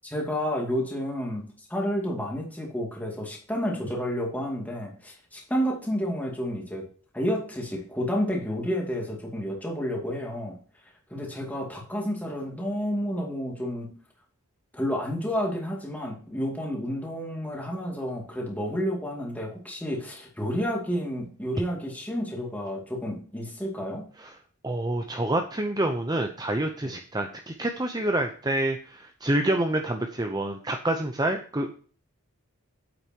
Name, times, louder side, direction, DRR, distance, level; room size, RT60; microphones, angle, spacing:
voice 1, 0.0-6.8 7.1-10.5 11.1-13.9 14.7-24.1 26.8-26.9, equal, 5° left, 0 dB, 2.4 m, -30 dB
voice 2, 24.6-31.8, right 1 dB, 20° right, 5 dB, 0.6 m, -27 dB
9.2 x 7.8 x 2.9 m, 0.43 s
head